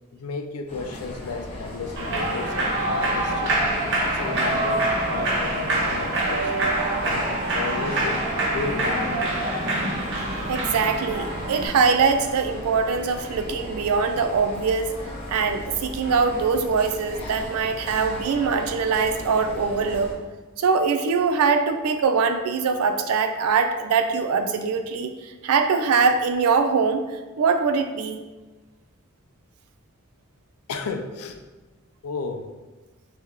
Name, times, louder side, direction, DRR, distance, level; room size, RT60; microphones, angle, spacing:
voice 1, 0.1-3.6 4.1-6.5 7.0-7.3 7.5-9.3 30.7-31.4 32.0-32.5, left 4 dB, 85° left, 6 dB, 0.4 m, -33 dB
sound 1, 0.7-20.1, left 1 dB, 25° left, 1.0 m, -37 dB
Human voice / Clapping / Cheering, 2.0-11.7, right 2 dB, 55° right, 0.8 m, -25 dB
voice 2, 10.5-15.0 15.3-20.1 20.6-27.0 27.4-28.2, right 5 dB, 85° right, 7 dB, 0.4 m, -22 dB
3.4 x 2.9 x 3.5 m, 1.2 s
head